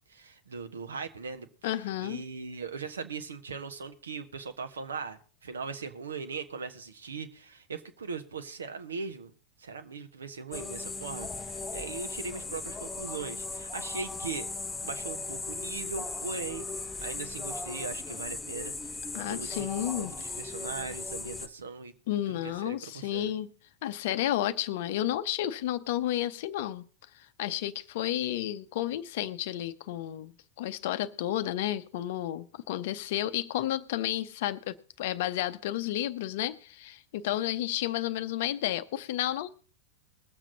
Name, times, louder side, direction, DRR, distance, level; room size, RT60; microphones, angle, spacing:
voice 1, 0.1-1.5 2.0-9.3 9.6-14.5 14.8-21.9 22.4-23.3, right 4 dB, 70° right, 1.1 m, -39 dB
voice 2, 1.6-2.2 19.1-20.1 22.1-23.5 23.8-26.9 27.4-39.6, left 13 dB, 55° left, 0.7 m, -32 dB
sound 1, 10.5-21.5, left 3 dB, 10° left, 0.7 m, -37 dB
21.0 x 7.5 x 3.9 m
figure-of-eight pair, 90°, 0 cm